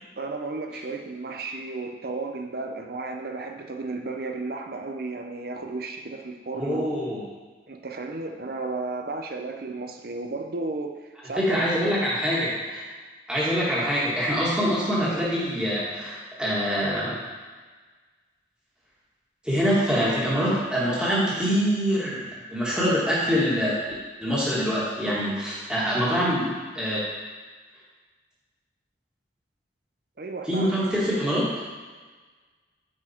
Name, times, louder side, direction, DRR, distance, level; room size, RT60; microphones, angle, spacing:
voice 1, 0.2-6.8 7.7-11.7 30.2-30.8, right 3 dB, 50° right, 4 dB, 0.6 m, -33 dB
voice 2, 6.5-7.2 11.4-12.8 13.3-17.2 19.4-22.2 22.5-23.8 24.2-27.0 30.5-31.4, equal, 5° right, -8 dB, 1.8 m, -24 dB
8.6 x 4.6 x 4.4 m, 1.4 s
head